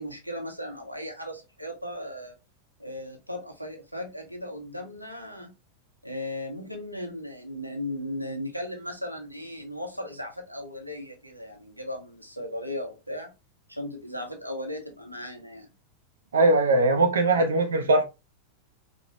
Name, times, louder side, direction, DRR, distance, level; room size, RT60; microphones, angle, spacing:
voice 1, 0.0-2.4 2.8-5.5 6.0-13.3 13.7-15.7, left 1 dB, 90° right, 1.0 m, -36 dB
voice 2, 16.3-18.0, right 2 dB, 65° right, 0.9 m, -20 dB
4.9 x 2.5 x 2.9 m
figure-of-eight pair, 90°, 0 cm